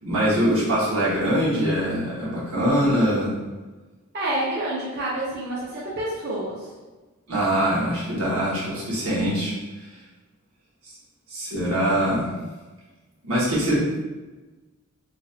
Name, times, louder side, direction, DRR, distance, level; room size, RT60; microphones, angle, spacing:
voice 1, 0.0-3.4 7.3-9.5 9.8-9.9 11.3-12.3 13.2-14.0, equal, 80° right, -7 dB, 1.4 m, -23 dB
voice 2, 4.1-6.7, right 1 dB, 50° right, -8 dB, 0.7 m, -28 dB
4.0 x 2.6 x 2.7 m, 1.2 s
head